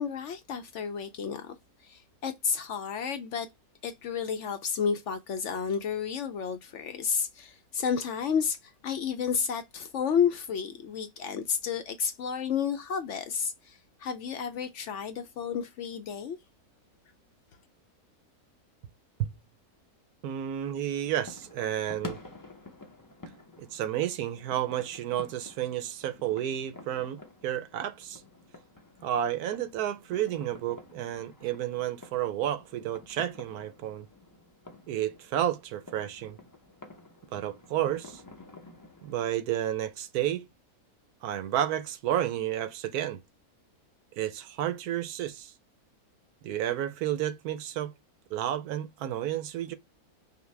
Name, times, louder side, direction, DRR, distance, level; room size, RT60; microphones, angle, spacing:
voice 1, 0.0-1.6 1.8-3.5 3.8-16.4, left 7 dB, 65° left, 0.8 m, -31 dB
voice 2, 20.2-22.2 23.6-28.2 29.0-34.1 34.9-36.4 37.3-38.2 39.0-40.5 41.2-43.2 44.2-45.5 46.4-47.9 48.3-49.7, right 11 dB, 85° right, 1.1 m, -31 dB
sound 1, 21.1-39.3, left 2 dB, 30° left, 0.3 m, -50 dB
5.7 x 2.1 x 3.2 m
omnidirectional pair, 1.6 m